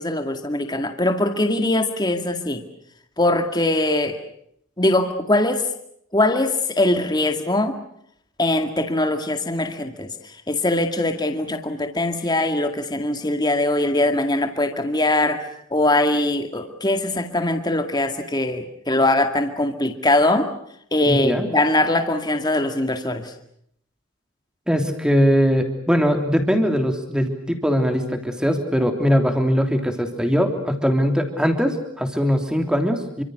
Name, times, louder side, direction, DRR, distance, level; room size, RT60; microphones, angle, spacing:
voice 1, 0.0-2.6 3.2-4.2 4.8-5.6 6.1-7.7 8.4-10.1 10.5-15.4 15.7-20.5 20.9-23.3, left 1 dB, 20° left, 6 dB, 2.1 m, -21 dB
voice 2, 21.1-21.5 24.7-33.2, equal, 5° right, 5 dB, 3.3 m, -21 dB
28.5 x 25.5 x 6.6 m, 0.70 s
head